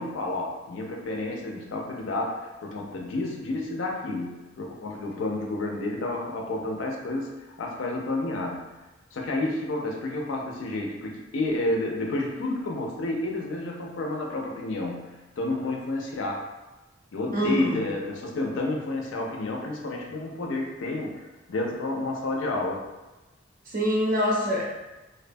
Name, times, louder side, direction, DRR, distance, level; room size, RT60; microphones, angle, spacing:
voice 1, 0.0-8.7 9.1-16.4 17.1-21.2 21.5-22.9, left 2 dB, 65° left, 0 dB, 0.4 m, -30 dB
voice 2, 17.3-17.8 23.7-24.6, equal, 45° right, -4 dB, 0.6 m, -25 dB
2.5 x 2.2 x 2.5 m, 1.1 s
head